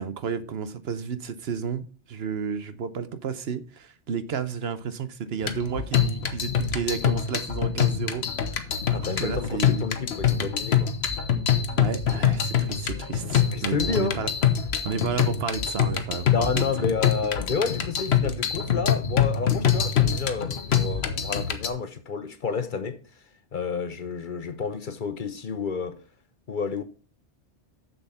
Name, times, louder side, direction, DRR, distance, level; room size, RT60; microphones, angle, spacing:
voice 1, 0.0-8.2 8.6-9.9 11.8-14.3 14.8-16.6, right 6 dB, 65° right, 1.0 m, -32 dB
sound 1, 5.4-21.7, left 8 dB, 65° left, 1.1 m, -25 dB
voice 2, 8.9-10.9 13.5-14.2 16.3-23.0 23.5-26.0 26.5-26.8, left 5 dB, 50° left, 0.8 m, -30 dB
7.1 x 7.0 x 5.6 m
omnidirectional pair, 1.2 m